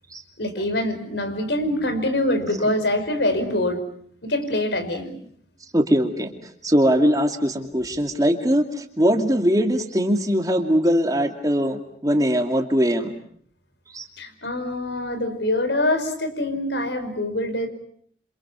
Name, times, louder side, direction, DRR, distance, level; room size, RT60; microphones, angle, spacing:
voice 1, 0.4-3.8 4.2-5.2 14.2-17.7, left 1 dB, 85° left, 8 dB, 5.2 m, -24 dB
voice 2, 5.7-6.3 6.6-13.1 13.9-14.1, equal, 20° right, 4 dB, 2.5 m, -21 dB
28.0 x 27.0 x 6.9 m, 0.62 s
head